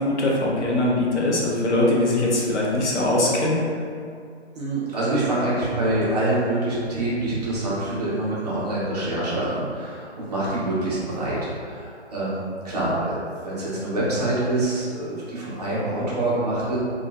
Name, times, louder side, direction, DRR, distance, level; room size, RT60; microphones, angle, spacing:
voice 1, 0.0-3.6, left 1 dB, 80° left, -3 dB, 0.8 m, -21 dB
voice 2, 4.5-16.8, right 1 dB, 35° right, -8 dB, 0.8 m, -26 dB
2.9 x 2.3 x 2.4 m, 2.3 s
hypercardioid pair, 160°, 34 cm